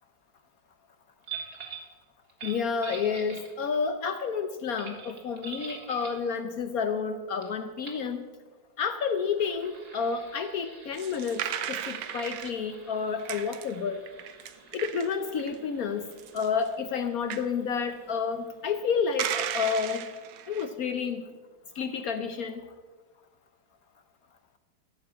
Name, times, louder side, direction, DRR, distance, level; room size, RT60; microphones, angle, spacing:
sound 1, 1.2-1.9 2.3-3.8 4.8-6.2 7.4-7.5 7.8-8.1 9.1-18.4, right 6 dB, 50° right, 2.2 m, -46 dB
voice 1, 2.4-8.3 8.8-11.4 11.7-14.1 14.7-16.1 16.3-20.0 20.5-21.2 21.8-22.6, left 6 dB, 70° left, 9 dB, 0.8 m, -30 dB
sound 2, 10.9-12.5 13.2-13.8 14.1-15.8 16.1-16.7 17.3-17.4 19.2-20.7, right 10 dB, 70° right, 1.2 m, -35 dB
13.5 x 6.7 x 8.3 m, 1.4 s
omnidirectional pair, 2.3 m